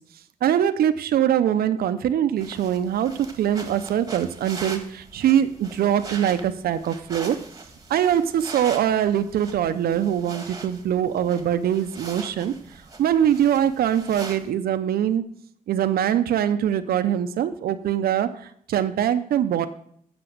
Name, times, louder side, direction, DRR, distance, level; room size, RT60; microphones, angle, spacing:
voice 1, 0.4-7.4 7.9-12.5 13.0-15.2 15.7-19.7, right 10 dB, 85° right, 10 dB, 0.6 m, -23 dB
sound 1, 2.4-14.5, right 3 dB, 25° right, 1.5 m, -41 dB
7.8 x 6.0 x 7.7 m, 0.65 s
cardioid pair, 100°, 15 cm